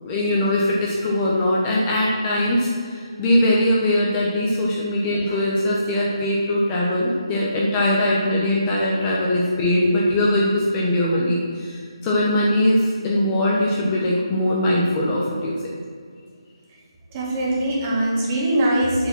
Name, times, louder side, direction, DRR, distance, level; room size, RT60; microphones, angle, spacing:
voice 1, 0.0-15.5, left 1 dB, 20° left, -5 dB, 1.0 m, -21 dB
voice 2, 17.1-19.1, right 1 dB, 25° right, -4 dB, 1.7 m, -22 dB
7.6 x 4.7 x 6.0 m, 2.1 s
figure-of-eight pair, 160°, 3 cm